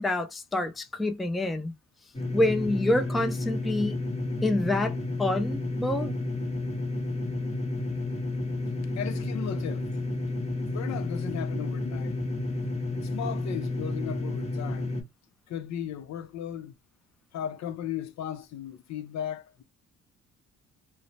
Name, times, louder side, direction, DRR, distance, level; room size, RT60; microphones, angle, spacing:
voice 1, 0.0-1.7 2.3-4.0 4.4-6.1, left 1 dB, ahead, 0.4 m, -27 dB
sound 1, 2.1-15.0, left 2 dB, 20° left, 1.1 m, -31 dB
voice 2, 8.9-10.0 10.7-12.1 12.9-15.0 15.5-16.7 17.3-19.6, left 9 dB, 65° left, 0.6 m, -36 dB
2.6 x 2.0 x 3.1 m
cardioid pair, 90°, 30 cm